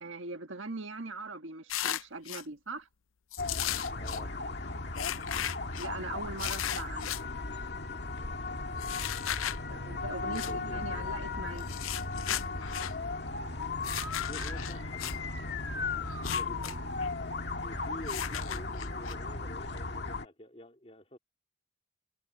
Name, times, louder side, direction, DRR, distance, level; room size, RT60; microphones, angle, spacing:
voice 1, 0.0-2.9 5.1-5.5 5.8-7.1 9.7-11.7, right 3 dB, 75° right, 1.5 m, -41 dB
sound 1, 1.7-2.4 3.3-4.2 5.0-5.9 6.4-7.2 8.8-9.6 10.3-10.5 11.6-12.9 13.8-15.2 16.1-16.8 17.0-17.1 18.1-19.1, left 12 dB, 85° left, 0.6 m, -36 dB
sound 2, 3.4-20.3, left 3 dB, 55° left, 2.1 m, -36 dB
voice 2, 4.0-4.3 10.1-11.2 14.2-15.2 16.2-16.8 17.6-21.2, left 1 dB, 30° left, 2.7 m, -48 dB
head